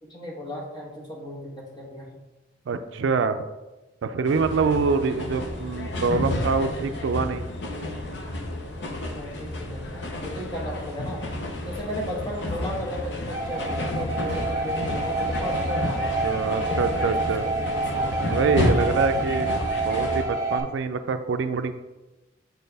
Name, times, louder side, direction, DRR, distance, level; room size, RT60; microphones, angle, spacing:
voice 1, 0.0-2.2 5.0-5.3 9.1-11.2 11.6-16.3 16.7-18.4, equal, 20° left, -3 dB, 1.2 m, -35 dB
voice 2, 2.7-3.4 4.0-7.5 16.2-17.4 18.2-19.5 19.8-21.7, right 4 dB, 75° right, 9 dB, 0.4 m, -25 dB
sound 1, 4.2-20.2, left 1 dB, 65° left, 0.7 m, -31 dB
sound 2, 13.3-20.6, right 3 dB, 15° right, 0.9 m, -28 dB
6.6 x 4.3 x 3.4 m, 1.1 s
head